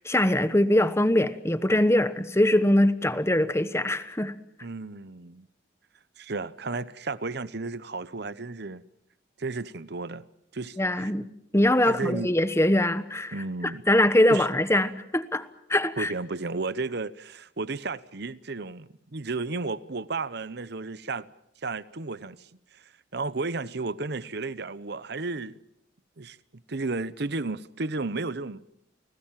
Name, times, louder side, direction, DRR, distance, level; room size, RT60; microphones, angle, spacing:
voice 1, 0.0-4.3 10.8-11.3 11.5-13.3 13.9-16.1, left 1 dB, 15° left, 1.1 m, -22 dB
voice 2, 4.6-5.5 6.2-8.8 9.4-10.2 10.5-11.1 11.8-12.3 13.3-13.8 14.3-14.5 16.0-21.3 21.6-22.5 22.7-25.6 26.2-26.4 26.7-28.6, right 3 dB, 55° right, 0.9 m, -33 dB
29.5 x 20.0 x 7.5 m
head